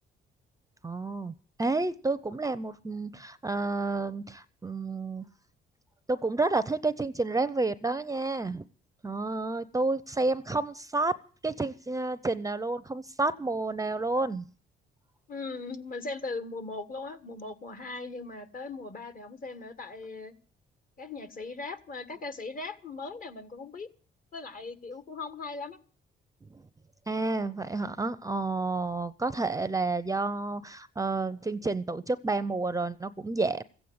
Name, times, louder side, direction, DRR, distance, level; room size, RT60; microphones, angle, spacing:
voice 1, 0.8-5.2 6.1-8.6 9.0-11.2 11.4-14.5 26.5-26.6 27.1-33.6, right 3 dB, 15° right, 15 dB, 0.6 m, -30 dB
voice 2, 15.3-20.3 21.0-23.9 24.3-25.8, left 3 dB, 45° left, 11 dB, 1.7 m, -39 dB
15.0 x 8.6 x 9.5 m, 0.42 s
cardioid pair, 90°, 20 cm